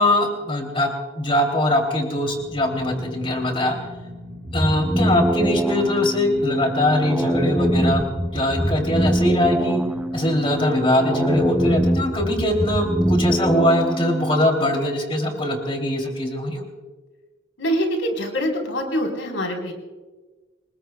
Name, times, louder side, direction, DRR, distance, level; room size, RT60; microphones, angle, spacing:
voice 1, 0.0-3.8 4.5-8.0 8.3-9.8 10.1-16.6, left 1 dB, 30° left, 3 dB, 2.9 m, -22 dB
sound 1, 2.2-12.0, left 1 dB, 85° right, 5.1 m, -39 dB
sound 2, 4.5-14.5, equal, 5° right, 0.5 m, -23 dB
voice 2, 17.6-19.7, equal, 90° left, 2 dB, 3.9 m, -24 dB
28.5 x 20.5 x 2.3 m, 1.3 s
head